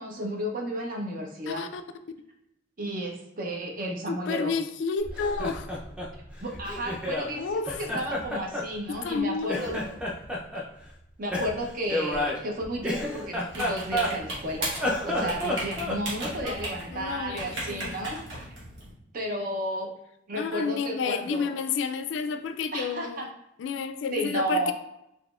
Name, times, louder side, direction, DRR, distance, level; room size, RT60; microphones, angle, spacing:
voice 1, 0.0-1.6 2.8-4.5 6.4-9.9 10.5-10.6 11.2-14.7 15.0-18.2 19.1-19.9 20.3-21.5 22.7-23.3 24.1-24.7, right 1 dB, 45° right, 0.7 m, -32 dB
voice 2, 1.5-1.8 4.1-5.7 7.3-7.8 8.9-9.6 16.9-18.0 20.3-23.3 23.6-24.7, left 5 dB, 70° left, 0.3 m, -30 dB
Laughter, 5.0-7.3 7.7-9.2 9.5-10.7 11.3-14.4 14.7-16.7, left 1 dB, 5° right, 0.5 m, -31 dB
sound 1, 13.5-18.9, right 1 dB, 75° right, 1.2 m, -36 dB
4.1 x 2.9 x 2.4 m
head